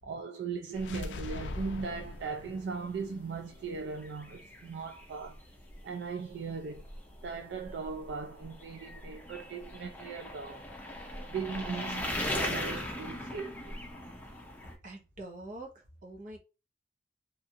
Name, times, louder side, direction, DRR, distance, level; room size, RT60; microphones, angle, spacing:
voice 1, 0.0-5.4 5.8-6.9 7.2-10.6 11.3-13.8, right 5 dB, 70° right, 0.3 m, -38 dB
sound 1, 0.7-4.6, left 3 dB, 90° left, 0.4 m, -44 dB
sound 2, 0.7-14.7, left 1 dB, 10° left, 0.6 m, -40 dB
voice 2, 14.8-16.4, right 1 dB, 50° right, 0.8 m, -45 dB
2.9 x 2.4 x 2.7 m
head